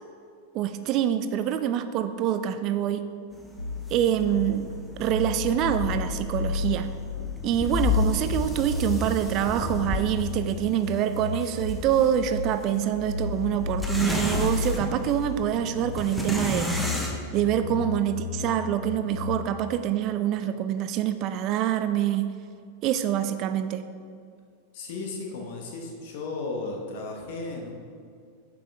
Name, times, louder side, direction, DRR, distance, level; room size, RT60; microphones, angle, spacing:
voice 1, 0.5-3.1 3.9-4.7 5.0-6.9 7.4-16.9 17.3-22.3 22.8-23.8, right 10 dB, 40° right, 10 dB, 0.3 m, -26 dB
sound 1, 3.3-17.2, left 2 dB, 5° left, 0.8 m, -33 dB
sound 2, 3.6-19.5, left 5 dB, 80° left, 0.5 m, -34 dB
voice 2, 24.7-27.7, left 3 dB, 50° left, 0 dB, 1.2 m, -35 dB
8.7 x 5.0 x 3.5 m, 2.2 s
figure-of-eight pair, 90°, 0 cm